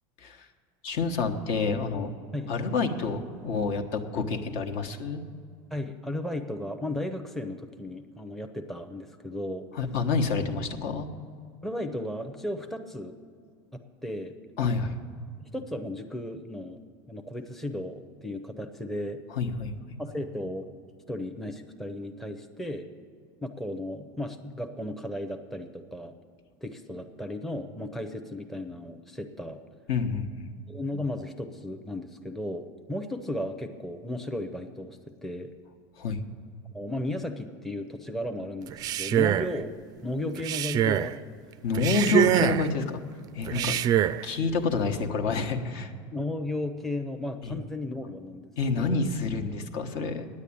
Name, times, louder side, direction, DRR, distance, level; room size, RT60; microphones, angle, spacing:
voice 1, 0.8-2.1 2.5-5.2 9.7-11.1 14.6-15.0 19.3-19.7 29.9-30.5 36.0-36.2 41.6-43.0 43.3-43.8 44.2-45.9 47.4-47.6 48.6-50.3, left 4 dB, 60° left, 5 dB, 1.2 m, -28 dB
voice 2, 5.7-9.7 11.6-13.2 13.7-14.3 15.4-16.8 17.1-19.2 20.0-20.7 21.1-22.9 23.4-26.1 26.6-29.6 30.7-35.5 36.7-39.7 40.0-41.1 43.5-43.8 46.1-49.0, left 1 dB, ahead, 5 dB, 0.6 m, -35 dB
Male speech man speaking, 38.7-39.6 40.4-41.1 41.7-42.7 43.5-44.2, right 11 dB, 35° right, 0.4 m, -25 dB
9.9 x 8.3 x 8.5 m, 2.1 s
supercardioid pair, 135°, 11 cm